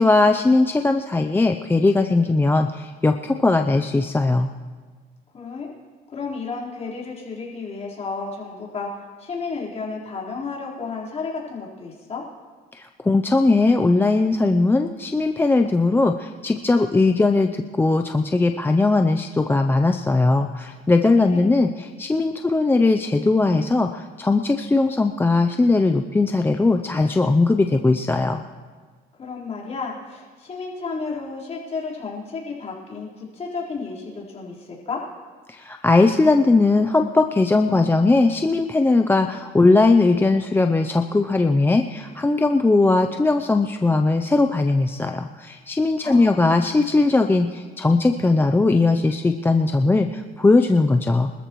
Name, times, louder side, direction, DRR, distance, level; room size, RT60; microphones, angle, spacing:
voice 1, 0.0-4.5 12.7-28.4 35.5-51.3, left 3 dB, 15° left, 6 dB, 0.5 m, -19 dB
voice 2, 5.3-5.7 6.1-12.2 21.2-21.6 29.2-35.0 46.0-46.8, left 4 dB, 40° left, -5 dB, 4.2 m, -32 dB
25.0 x 13.5 x 3.1 m, 1.5 s
cardioid pair, 110°, 17 cm